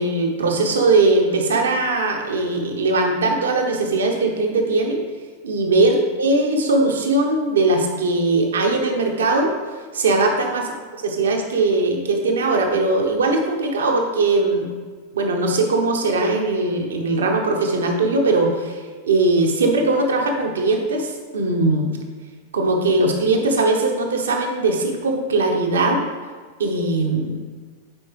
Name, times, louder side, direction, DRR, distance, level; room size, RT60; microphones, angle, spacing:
voice 1, 0.0-5.0 5.4-9.5 9.9-10.7 11.0-14.7 15.1-21.9 22.5-26.1 26.6-27.4, right 2 dB, 65° right, 2 dB, 0.9 m, -20 dB
9.8 x 4.6 x 3.2 m, 1.5 s
figure-of-eight pair, 90°, 0 cm